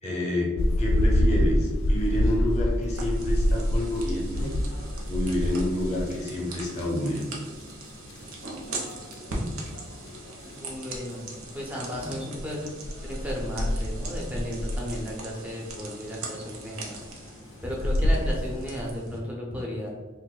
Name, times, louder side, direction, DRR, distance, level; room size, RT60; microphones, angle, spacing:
voice 1, 0.0-7.2 12.0-12.3, left 1 dB, 30° left, -2 dB, 0.7 m, -29 dB
sound 1, 0.6-19.0, left 1 dB, 70° left, 0.3 m, -29 dB
sound 2, 2.9-19.2, right 2 dB, 90° right, 0.6 m, -41 dB
voice 2, 9.3-9.7 10.4-11.3 11.5-17.0 17.6-19.9, equal, 5° right, -3 dB, 0.5 m, -35 dB
2.5 x 2.3 x 4.0 m, 1.3 s
head